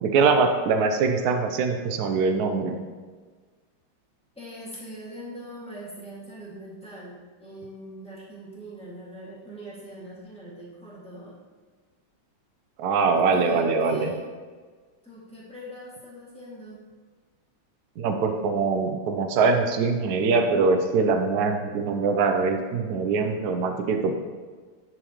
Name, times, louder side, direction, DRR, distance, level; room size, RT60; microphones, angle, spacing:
voice 1, 0.0-2.8 12.8-14.1 18.0-24.2, right 4 dB, 75° right, 5 dB, 0.9 m, -23 dB
voice 2, 4.3-11.4 13.1-14.3 15.0-16.8, equal, 5° left, -8 dB, 1.9 m, -42 dB
10.0 x 4.6 x 3.1 m, 1.5 s
omnidirectional pair, 2.4 m